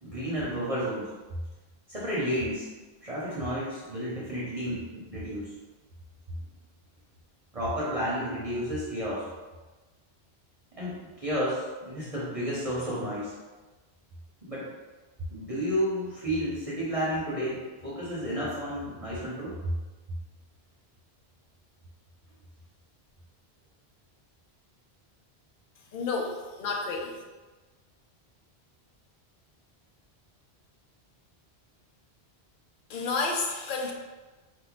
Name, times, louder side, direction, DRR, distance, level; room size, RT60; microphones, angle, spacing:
voice 1, 0.0-1.1 1.9-2.7 3.0-5.5 7.5-9.3 10.8-13.3 14.5-14.7 15.3-19.7, equal, 35° right, -8 dB, 1.1 m, -31 dB
voice 2, 25.9-27.2 32.9-33.9, left 3 dB, 55° left, 0 dB, 0.8 m, -30 dB
4.5 x 2.6 x 4.0 m, 1.3 s
omnidirectional pair, 1.1 m